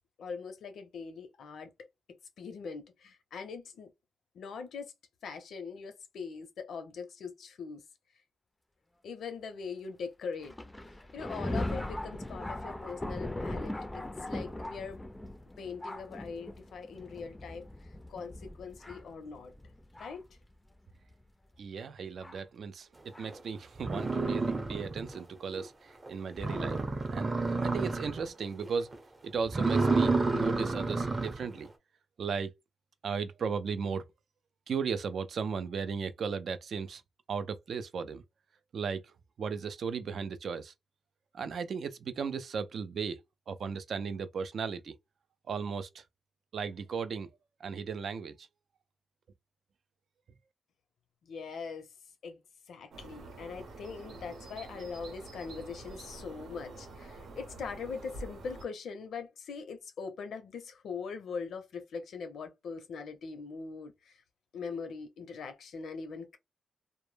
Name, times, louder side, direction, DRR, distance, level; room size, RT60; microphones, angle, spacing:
voice 1, 0.2-1.7 2.4-3.9 4.3-4.9 5.2-7.8 9.0-10.5 11.1-15.0 15.6-17.7 18.1-19.5 20.0-20.2 51.2-51.9 52.2-52.4 52.7-64.2 64.5-66.4, left 5 dB, 80° left, 0.5 m, -42 dB
Thunder, 10.4-20.3 21.1-21.2 22.2-22.4 23.1-23.3, left 1 dB, 15° left, 0.4 m, -39 dB
voice 2, 21.6-26.8 27.1-27.3 27.6-28.9 29.2-31.7 32.2-32.5 33.0-34.0 34.7-37.0 37.3-38.2 38.7-40.7 41.3-43.2 43.5-44.9 45.5-46.0 46.5-47.3 47.6-48.5, right 6 dB, 65° right, 0.3 m, -36 dB
sound 1, 23.3-23.4 23.8-25.2 25.6-25.7 26.1-26.2 26.4-28.3 28.6-28.9 29.4-31.5, right 3 dB, 30° right, 0.7 m, -30 dB
sound 2, 52.9-58.6, right 2 dB, 85° right, 0.8 m, -47 dB
2.1 x 2.0 x 3.1 m
cardioid pair, 85°, 0 cm